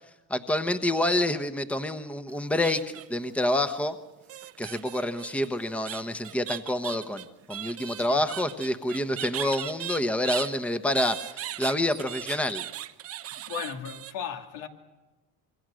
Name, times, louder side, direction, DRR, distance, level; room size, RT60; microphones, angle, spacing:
voice 1, 0.3-4.0 4.6-12.6, left 1 dB, 5° left, 1.0 m, -28 dB
sound 1, 2.3-3.3 4.3-10.5 11.0-14.1, right 12 dB, 40° right, 0.9 m, -38 dB
voice 2, 13.5-14.7, left 7 dB, 80° left, 2.6 m, -35 dB
26.0 x 23.0 x 6.4 m
cardioid pair, 125°, 35 cm